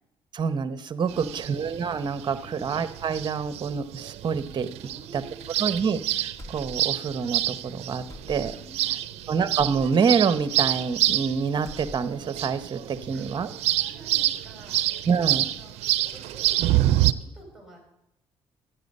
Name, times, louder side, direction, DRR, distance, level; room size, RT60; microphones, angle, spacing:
voice 1, 0.3-4.7 5.1-5.2 5.6-8.6 9.3-13.5 15.1-15.4, right 6 dB, 45° right, 13 dB, 0.9 m, -27 dB
voice 2, 1.0-1.6 2.4-2.7 4.8-6.0 8.6-9.3 13.1-15.7 16.0-17.8, right 1 dB, 5° right, 0 dB, 6.2 m, -50 dB
sound 1, 1.1-17.1, right 14 dB, 80° right, 0.5 m, -28 dB
sound 2, 6.4-7.0 7.3-7.4 8.1-8.7 9.6-9.9 10.7-11.3 11.5-12.3, left 1 dB, 30° left, 2.2 m, -44 dB
12.5 x 10.0 x 5.4 m, 0.83 s
cardioid pair, 85°, 11 cm